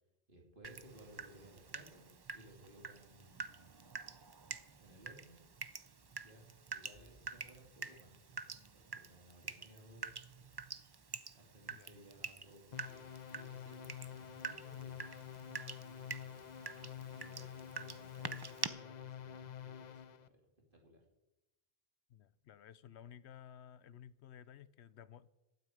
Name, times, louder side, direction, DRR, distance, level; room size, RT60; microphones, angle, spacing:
voice 1, 0.3-3.8 4.8-5.4 6.2-10.5 11.3-20.4 20.7-21.0, right 1 dB, 50° right, 1 dB, 2.8 m, -60 dB
Water tap faucet / Drip, 0.6-18.7, right 5 dB, 30° right, 0.5 m, -47 dB
sound 1, 12.7-20.3, left 9 dB, 50° left, 0.6 m, -49 dB
voice 2, 22.1-25.3, left 9 dB, 80° left, 17 dB, 0.9 m, -55 dB
12.5 x 9.3 x 9.1 m, 0.99 s
omnidirectional pair, 1.1 m